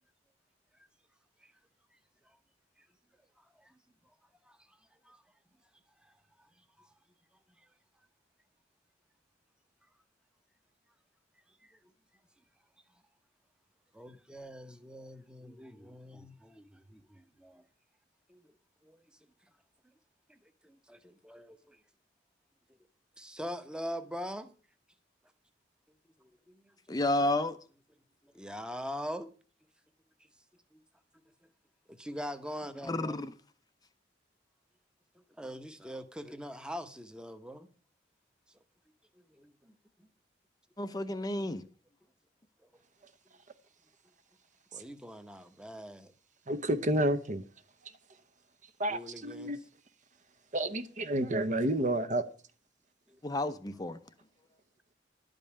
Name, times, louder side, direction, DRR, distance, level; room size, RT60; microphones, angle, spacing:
voice 1, 3.4-3.8 4.4-4.8 5.0-5.2 6.0-6.9 7.6-7.7 11.6-11.9 13.9-17.6 18.3-18.5 18.8-19.1 20.3-21.8 23.2-24.5 26.2-26.7 28.2-29.3 30.7-30.8 31.9-33.3 35.1-37.7 38.5-38.6 39.1-40.1 42.6-42.7 44.7-46.1 48.9-49.6 53.1-53.2, equal, 5° right, 0.9 m, -44 dB
voice 2, 26.9-27.6 32.9-33.3 40.8-41.6 53.2-54.0, left 1 dB, 20° left, 0.6 m, -31 dB
voice 3, 46.5-47.4 48.8-49.6 50.5-52.3, right 1 dB, 40° right, 0.9 m, -30 dB
12.0 x 5.3 x 8.6 m
head